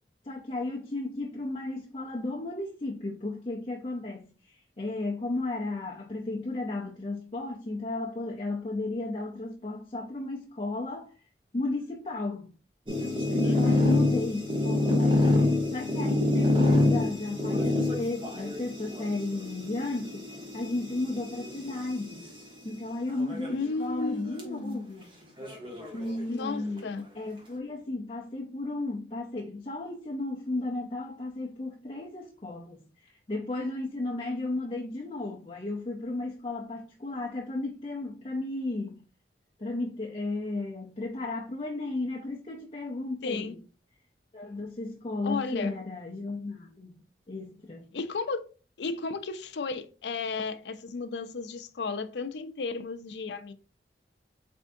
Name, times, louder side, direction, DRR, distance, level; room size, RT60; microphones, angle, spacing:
voice 1, 0.2-11.1 11.5-12.5 13.3-22.3 22.6-25.1 25.9-39.0 39.6-43.6 44.3-47.0 47.3-47.9, left 2 dB, 30° left, 0.5 m, -34 dB
sound 1, 12.9-22.3 23.1-23.6 24.0-24.1 24.4-24.5 25.4-26.5, left 2 dB, 30° right, 1.1 m, -27 dB
voice 2, 13.4-13.9 23.5-24.8 26.3-27.0 43.2-43.5 45.2-45.8 47.9-48.4 48.8-53.5, left 4 dB, 80° left, 0.5 m, -34 dB
4.3 x 3.5 x 2.6 m
head